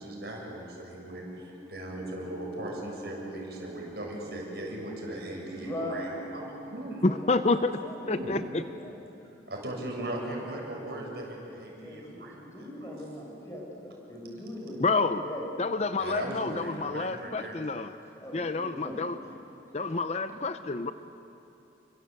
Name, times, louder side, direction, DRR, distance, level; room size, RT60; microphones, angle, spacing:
voice 1, 0.0-7.1 8.0-8.4 9.5-12.6 16.0-17.6, right 1 dB, 65° right, -1 dB, 7.1 m, -38 dB
Musical instrument, 1.4-8.2, right 1 dB, 15° right, 2.6 m, -46 dB
voice 2, 5.5-6.3 7.0-8.1 8.4-9.0 11.8-15.5 17.4-19.0 19.8-20.0 20.3-20.4, left 1 dB, 15° left, -1 dB, 5.7 m, -41 dB
voice 3, 7.0-7.8 8.1-8.6 14.8-15.2 15.6-17.9 18.3-19.1 19.7-20.9, left 3 dB, 35° left, 10 dB, 0.6 m, -28 dB
29.0 x 25.0 x 8.3 m, 2.9 s
head